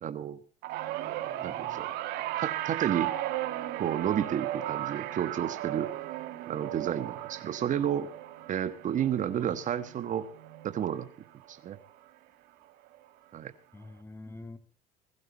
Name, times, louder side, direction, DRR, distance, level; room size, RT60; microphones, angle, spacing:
voice 1, 0.0-0.4 1.4-1.9 2.4-3.1 3.8-5.9 6.5-8.1 8.5-10.3 10.6-11.1 11.5-11.8 13.3-13.5, right 9 dB, 50° right, 12 dB, 1.3 m, -31 dB
sound 1, 0.6-11.1 11.4-11.8 12.9-13.0, right 14 dB, 70° right, 1.8 m, -36 dB
Organ, 0.6-11.3, right 9 dB, 85° right, 5.9 m, -57 dB
voice 2, 1.0-1.8 9.4-9.6 13.7-14.6, left 2 dB, 15° left, 9 dB, 2.6 m, -47 dB
21.5 x 12.5 x 4.0 m, 0.42 s
supercardioid pair, 80°, 17 cm